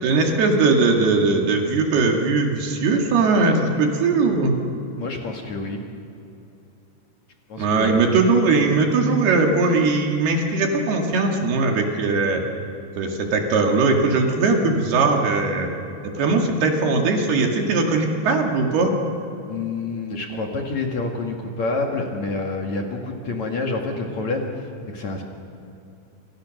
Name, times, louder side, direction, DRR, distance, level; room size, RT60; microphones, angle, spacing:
voice 1, 0.0-4.5 7.6-12.4 13.0-15.7 16.0-18.9, right 3 dB, 65° right, 2 dB, 4.1 m, -20 dB
voice 2, 5.0-5.9 7.5-8.0 19.5-25.2, left 3 dB, 50° left, 1 dB, 2.8 m, -28 dB
28.5 x 27.5 x 6.6 m, 2.7 s
omnidirectional pair, 5.0 m